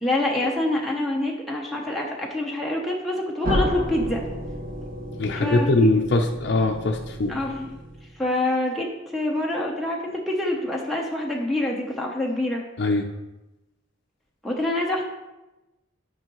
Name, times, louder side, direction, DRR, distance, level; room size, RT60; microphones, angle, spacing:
voice 1, 0.0-4.2 5.3-5.9 7.3-7.7 8.2-12.6 14.4-15.0, left 1 dB, ahead, -1 dB, 0.7 m, -26 dB
sound 1, 3.4-8.2, equal, 45° right, 1.7 m, -31 dB
voice 2, 5.2-7.3 12.8-13.1, left 2 dB, 60° left, 1 dB, 0.5 m, -21 dB
9.9 x 5.5 x 3.0 m, 1.0 s
head